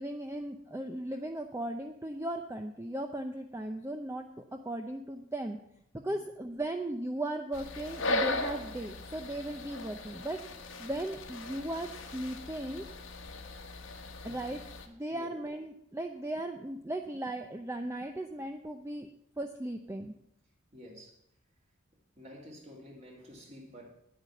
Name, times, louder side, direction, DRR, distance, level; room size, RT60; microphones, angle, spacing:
voice 1, 0.0-5.6 5.9-10.4 10.8-12.8 14.2-19.1 19.4-20.1, right 1 dB, 15° right, 0.6 m, -37 dB
sound 1, 7.5-14.9, left 2 dB, 85° left, 1.5 m, -38 dB
voice 2, 14.3-14.6 15.1-15.3 20.7-21.2 22.2-23.9, equal, 35° right, 2.8 m, -50 dB
9.9 x 8.7 x 7.1 m
head